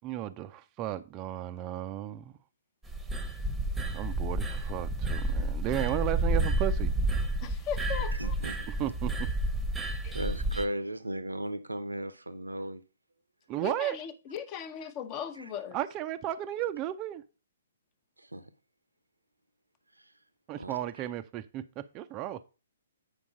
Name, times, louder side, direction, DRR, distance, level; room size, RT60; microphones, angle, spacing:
voice 1, 0.0-2.3 3.9-6.9 8.8-9.1 13.5-14.0 15.7-17.2 20.5-21.6 21.9-22.4, right 12 dB, 25° right, 0.5 m, -34 dB
sound 1, 2.9-10.6, right 2 dB, 5° right, 0.9 m, -30 dB
voice 2, 7.4-8.4 10.0-10.1 13.6-15.8, left 8 dB, 25° left, 0.8 m, -38 dB
voice 3, 8.2-8.6 10.1-12.8 15.4-15.5 18.2-18.5 20.0-20.1 20.5-21.0, right 1 dB, 80° right, 0.8 m, -36 dB
8.3 x 5.3 x 4.9 m
figure-of-eight pair, 125°, 0 cm